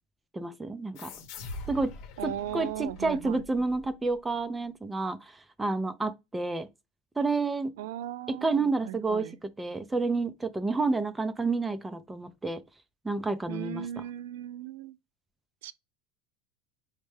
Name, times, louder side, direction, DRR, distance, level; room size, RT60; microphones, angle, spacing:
voice 1, 0.3-1.1 1.7-1.9 2.2-5.3 5.6-6.7 7.2-7.7 8.3-9.3 9.6-12.6 13.0-13.9, right 3 dB, 5° right, 0.3 m, -29 dB
sound 1, 1.0-4.2, left 2 dB, 40° left, 0.9 m, -44 dB
voice 2, 2.2-3.5 7.8-9.4 13.5-15.0 15.6-15.7, right 11 dB, 85° right, 0.3 m, -37 dB
5.3 x 2.1 x 3.2 m
supercardioid pair, 180°, 0 cm